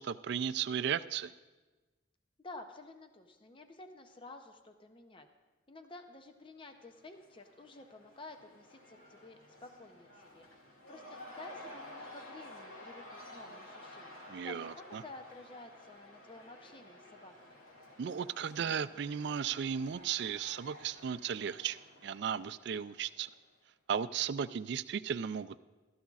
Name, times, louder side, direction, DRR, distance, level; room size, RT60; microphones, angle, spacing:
voice 1, 0.0-1.3 14.3-15.0 18.0-23.3 23.9-25.6, right 8 dB, 55° right, 15 dB, 0.3 m, -35 dB
voice 2, 2.4-5.3 5.7-10.5 10.9-13.0 13.3-17.5, left 2 dB, 25° left, 5 dB, 0.6 m, -52 dB
Cheering / Crowd, 6.6-23.5, left 1 dB, 90° left, 2.2 m, -53 dB
16.5 x 13.0 x 2.4 m, 1.2 s
head